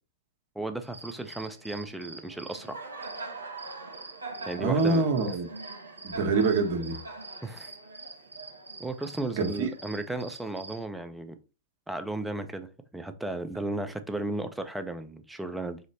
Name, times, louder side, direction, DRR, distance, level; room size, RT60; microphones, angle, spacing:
voice 1, 0.6-2.8 4.5-5.1 7.4-7.7 8.8-11.4 11.9-15.8, right 2 dB, 5° right, 0.6 m, -35 dB
Cricket, 0.8-10.8, right 3 dB, 90° right, 1.0 m, -43 dB
voice 2, 4.6-5.5 6.0-7.0 9.4-9.7, right 4 dB, 60° right, 1.2 m, -25 dB
5.0 x 2.1 x 4.1 m
hypercardioid pair, 105°, 0 cm